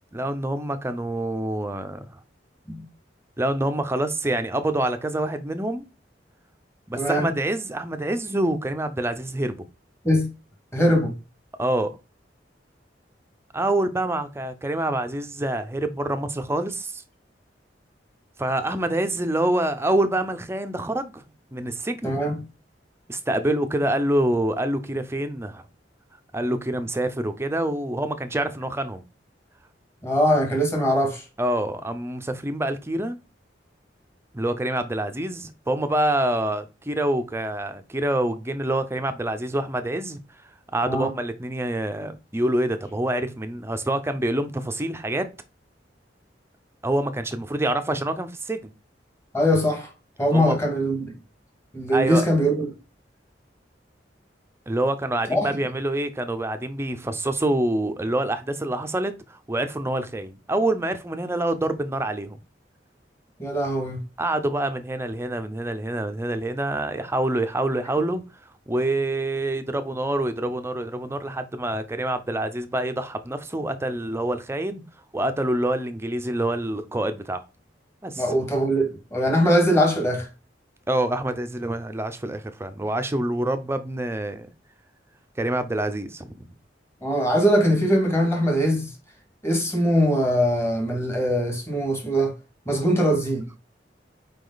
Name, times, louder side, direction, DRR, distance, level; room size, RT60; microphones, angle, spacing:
voice 1, 0.1-2.0 3.4-5.8 6.9-9.6 11.6-12.0 13.5-17.0 18.4-21.2 21.5-22.2 23.1-25.6 26.3-29.0 31.4-33.2 34.3-40.2 40.7-45.3 46.8-48.6 50.3-50.6 51.9-52.3 54.7-62.4 64.2-68.2 68.7-74.8 75.1-77.4 78.0-78.2 80.9-84.5 85.4-86.5, right 1 dB, 15° right, 0.6 m, -26 dB
voice 2, 6.9-7.3 10.0-10.3 10.7-11.1 22.0-22.4 30.0-31.2 40.9-41.1 49.3-49.9 50.2-51.1 51.7-52.6 55.3-55.5 63.4-64.0 78.2-80.3 87.0-88.9 89.4-92.3 92.7-93.4, equal, 15° left, 1.9 m, -21 dB
5.1 x 4.8 x 4.0 m
head